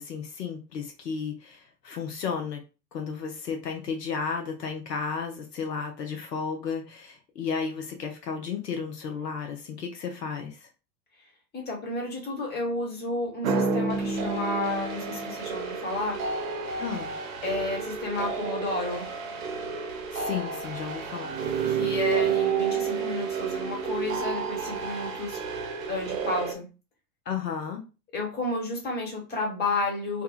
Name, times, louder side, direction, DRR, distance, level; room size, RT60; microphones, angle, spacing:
voice 1, 0.0-2.6 2.9-10.7 16.8-17.1 20.1-21.3 27.3-27.8, left 6 dB, 75° left, 3 dB, 0.7 m, -33 dB
voice 2, 11.5-16.2 17.4-19.1 21.6-25.4 25.9-26.7 28.1-30.2, left 2 dB, 20° left, 0 dB, 1.1 m, -31 dB
sound 1, 13.4-26.5, right 5 dB, 55° right, 0.7 m, -30 dB
2.7 x 2.2 x 2.4 m, 0.30 s
figure-of-eight pair, 85°, 49 cm